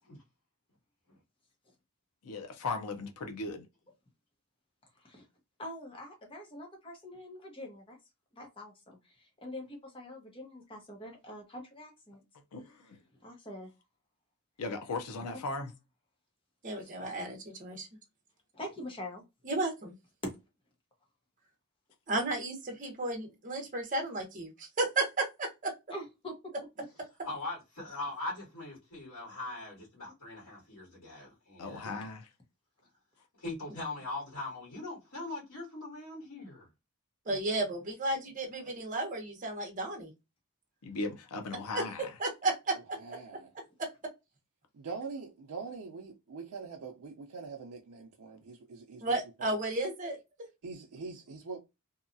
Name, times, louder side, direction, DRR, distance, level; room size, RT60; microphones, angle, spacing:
voice 1, 2.2-3.7 12.5-13.0 14.6-15.7 31.6-32.3 40.8-42.2, left 3 dB, 85° left, 0.6 m, -37 dB
voice 2, 5.6-8.0 8.3-12.2 13.2-13.7 16.8-16.9 18.5-19.2 20.2-20.3 25.9-26.5 26.8-26.9, left 1 dB, 25° left, 0.8 m, -44 dB
voice 3, 16.6-17.9 19.4-19.9 22.1-25.7 37.3-40.1 41.7-41.8 42.2-43.0 43.8-43.9 49.0-50.2, right 2 dB, 35° right, 0.8 m, -33 dB
voice 4, 27.2-31.9 33.4-36.7, left 2 dB, 70° left, 1.5 m, -41 dB
voice 5, 42.7-43.5 44.7-49.6 50.6-51.6, right 4 dB, 85° right, 0.5 m, -43 dB
2.8 x 2.3 x 2.5 m
head